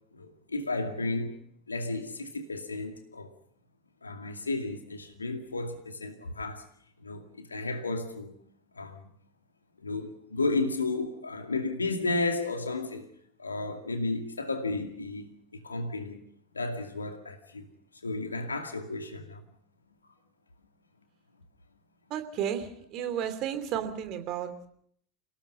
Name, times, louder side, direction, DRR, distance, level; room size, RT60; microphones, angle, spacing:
voice 1, 0.1-1.4 1.7-3.3 4.0-6.7 7.0-8.4 8.7-9.1 9.8-13.1 13.4-16.2 16.5-17.7 18.0-19.5, left 3 dB, 80° left, 2.4 m, -33 dB
voice 2, 22.1-24.7, right 9 dB, 45° right, 2.9 m, -33 dB
29.5 x 17.5 x 5.5 m
figure-of-eight pair, 75°, 0 cm